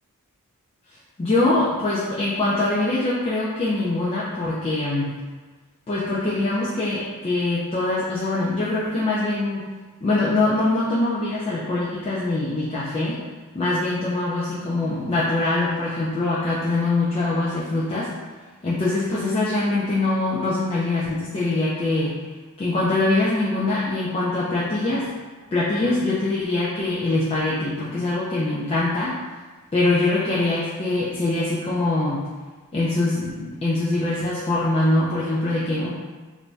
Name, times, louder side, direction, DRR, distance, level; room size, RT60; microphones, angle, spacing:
voice 1, 1.2-5.1 5.9-9.6 10.0-13.2 13.5-18.1 18.6-22.2 22.6-25.1 25.5-29.2 29.7-32.3 32.7-35.9, left 2 dB, 25° left, -8 dB, 0.3 m, -23 dB
2.5 x 2.1 x 3.2 m, 1.3 s
head